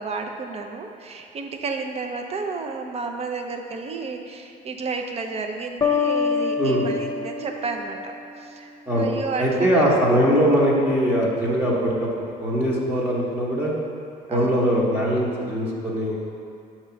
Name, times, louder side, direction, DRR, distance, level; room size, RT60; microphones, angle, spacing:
voice 1, 0.0-9.8 14.3-14.7, right 4 dB, 35° right, 4 dB, 0.6 m, -32 dB
sound 1, 5.8-8.6, left 5 dB, 20° left, 0.5 m, -26 dB
voice 2, 9.4-12.1 12.4-13.7 14.3-16.2, equal, 15° right, -6 dB, 1.0 m, -21 dB
6.3 x 3.0 x 5.7 m, 2.5 s
cardioid pair, 110°, 17 cm